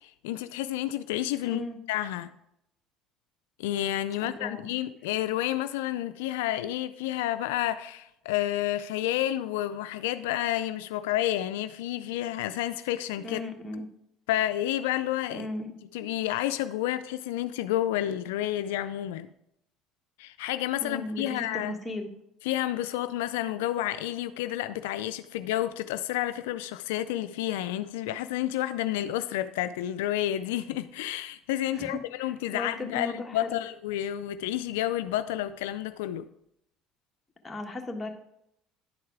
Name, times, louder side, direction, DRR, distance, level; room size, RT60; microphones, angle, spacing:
voice 1, 0.0-1.6 1.9-2.3 3.6-13.4 14.3-15.5 15.9-19.3 20.2-21.7 22.4-36.3, left 13 dB, 90° left, 0.3 m, -30 dB
voice 2, 1.4-1.8 4.2-4.6 13.2-13.9 15.3-15.7 20.8-22.1 31.7-33.6 37.4-38.1, left 2 dB, 15° left, 1.5 m, -36 dB
10.5 x 4.8 x 4.7 m
supercardioid pair, 85°, 0 cm